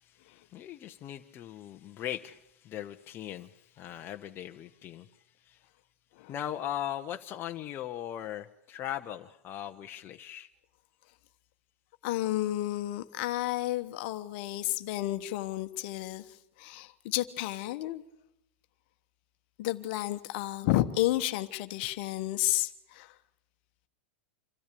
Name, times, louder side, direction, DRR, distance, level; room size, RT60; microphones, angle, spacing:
voice 1, 0.0-5.6 6.3-10.5, left 11 dB, 35° left, 5 dB, 0.9 m, -39 dB
voice 2, 12.0-16.2 16.6-18.0 19.6-23.1, left 16 dB, 55° left, 10 dB, 1.2 m, -31 dB
26.5 x 13.5 x 8.5 m, 0.83 s
hypercardioid pair, 105°, 7 cm